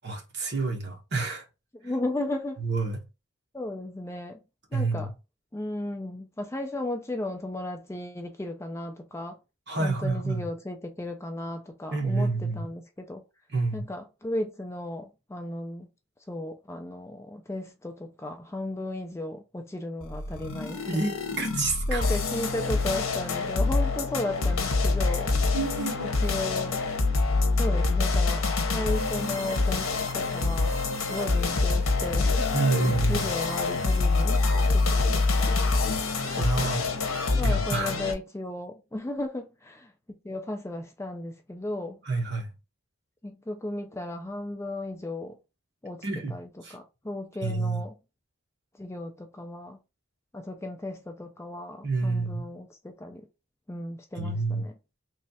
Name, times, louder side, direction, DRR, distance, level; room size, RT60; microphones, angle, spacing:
voice 1, 0.0-1.5 2.6-3.0 4.7-5.1 9.7-10.5 11.9-12.7 13.5-13.9 20.9-22.1 25.5-26.1 32.5-33.3 36.2-36.8 37.4-37.9 42.0-42.5 46.0-46.3 46.6-46.8 47.4-47.8 51.8-52.4 54.2-54.6, right 3 dB, 55° right, 1.0 m, -28 dB
voice 2, 1.8-2.6 3.5-4.4 4.7-5.1 5.5-9.4 9.8-13.2 13.7-15.9 16.3-21.0 21.9-25.3 26.2-26.8 27.5-30.8 31.1-32.5 33.1-34.4 34.7-35.1 35.4-35.6 36.4-36.6 37.4-39.9 40.2-42.0 43.2-45.3 45.8-46.0 46.3-47.9 48.8-49.8 50.3-53.2 53.7-54.7, left 1 dB, 15° left, 0.4 m, -35 dB
sound 1, 20.0-38.1, left 3 dB, 85° left, 0.8 m, -26 dB
3.2 x 2.4 x 4.0 m
head